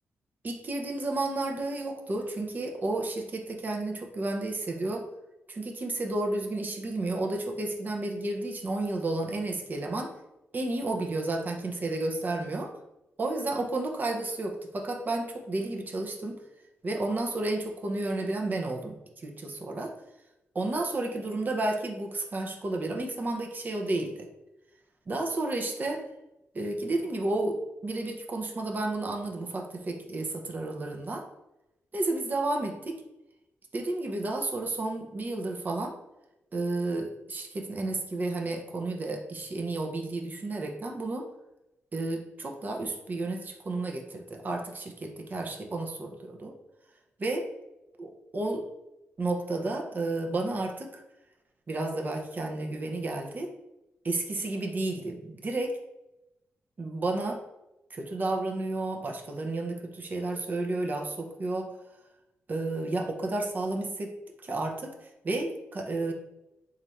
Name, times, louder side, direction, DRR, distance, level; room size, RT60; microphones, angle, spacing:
voice 1, 0.4-5.1 5.5-10.1 10.5-12.7 13.2-16.4 16.8-19.9 20.5-24.3 25.1-26.0 26.5-31.3 31.9-33.0 33.7-36.0 36.5-41.3 41.9-46.5 47.2-47.5 48.0-48.7 49.2-51.0 51.7-53.5 54.0-55.8 56.8-57.4 57.9-61.7 62.5-64.1 64.4-66.1, right 2 dB, 40° right, 2 dB, 0.6 m, -32 dB
3.2 x 2.5 x 4.0 m, 0.94 s
cardioid pair, 90°, 5 cm